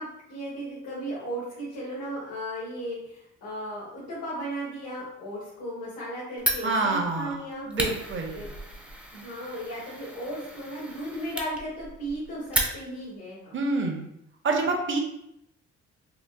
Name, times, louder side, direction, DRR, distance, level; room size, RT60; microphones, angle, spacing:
voice 1, 0.0-7.7 8.3-8.6 9.1-13.6, right 1 dB, 85° left, -9 dB, 1.3 m, -36 dB
Fire, 6.4-13.2, right 1 dB, 5° right, 0.5 m, -34 dB
voice 2, 6.6-7.4 7.7-8.4 13.5-14.1 14.4-15.0, right 3 dB, 40° right, 2 dB, 0.7 m, -27 dB
3.9 x 2.4 x 2.3 m, 0.79 s
cardioid pair, 90°, 30 cm